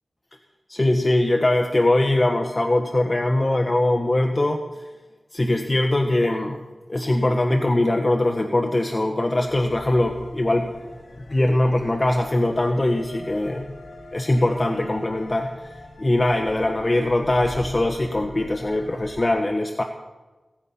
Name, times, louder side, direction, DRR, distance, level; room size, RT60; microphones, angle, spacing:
voice 1, 0.7-4.6 5.3-6.6 6.9-10.7 11.3-13.6 14.1-19.8, left 1 dB, 30° left, 3 dB, 1.2 m, -21 dB
sound 1, 9.5-19.3, left 2 dB, 65° left, 2.6 m, -41 dB
17.0 x 15.0 x 5.7 m, 1.2 s
wide cardioid pair, 100°, 0 cm